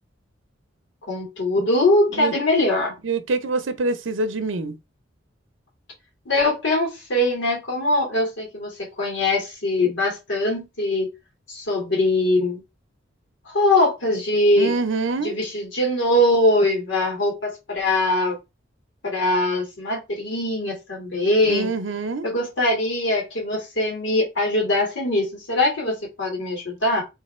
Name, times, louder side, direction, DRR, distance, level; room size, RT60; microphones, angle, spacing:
voice 1, 1.1-2.9 6.3-11.1 11.5-12.6 13.5-14.7 15.2-18.4 19.0-21.7 22.2-27.0, left 1 dB, 65° left, 2.5 m, -22 dB
voice 2, 3.0-4.7 14.6-15.3 21.4-22.3, right 3 dB, 80° right, 0.7 m, -25 dB
3.8 x 3.3 x 4.3 m
head